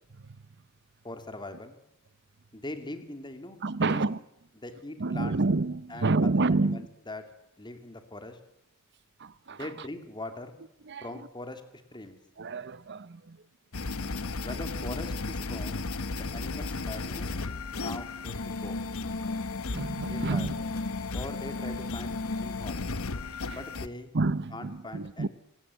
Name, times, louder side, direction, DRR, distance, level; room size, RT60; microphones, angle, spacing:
voice 1, 1.0-1.8 2.5-4.0 4.6-5.4 5.9-6.1 6.6-7.2 7.6-8.4 9.5-10.6 11.0-11.6 11.9-12.2 14.4-15.9 16.1-17.4 17.7-18.8 20.1-20.5 21.1-22.8 23.5-24.1 24.5-25.3, left 2 dB, 20° left, 2.7 m, -41 dB
voice 2, 3.6-4.2 5.0-6.9 9.2-9.9 10.8-11.3 12.4-13.4 19.7-20.6 23.5-23.6 24.1-25.3, right 3 dB, 55° right, 0.9 m, -29 dB
sound 1, 13.7-23.9, left 3 dB, 80° left, 1.1 m, -34 dB
26.5 x 18.0 x 8.5 m
head